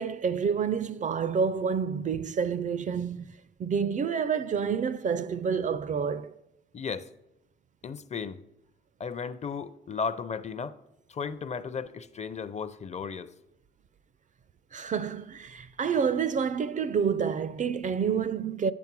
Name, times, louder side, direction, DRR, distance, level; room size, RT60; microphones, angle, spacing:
voice 1, 0.0-6.4 14.7-18.7, right 6 dB, 40° right, 0.4 m, -28 dB
voice 2, 6.7-7.1 7.8-8.4 9.0-10.8 11.1-13.3, left 5 dB, 35° left, 0.6 m, -35 dB
9.0 x 7.1 x 4.6 m
cardioid pair, 90°, 20 cm